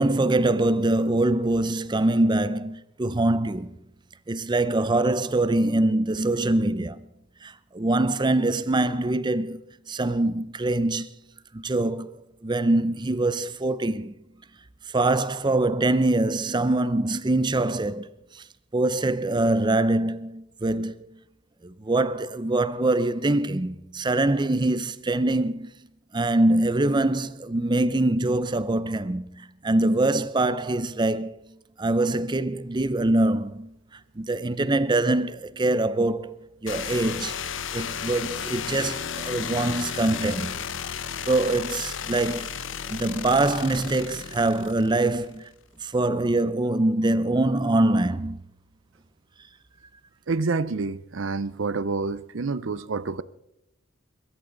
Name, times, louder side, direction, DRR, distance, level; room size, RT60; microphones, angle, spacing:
voice 1, 0.0-3.8 4.3-7.0 7.4-9.6 9.9-11.1 11.5-14.1 14.9-18.4 18.7-21.1 21.6-25.7 26.1-31.4 31.8-33.7 34.2-37.4 37.7-40.6 41.3-42.5 42.9-45.5 45.8-48.4, right 2 dB, 25° right, 0.5 m, -24 dB
sound 1, 36.7-45.4, left 7 dB, 65° left, 0.8 m, -34 dB
voice 2, 50.3-53.2, right 4 dB, 70° right, 0.6 m, -28 dB
23.0 x 13.5 x 3.9 m
head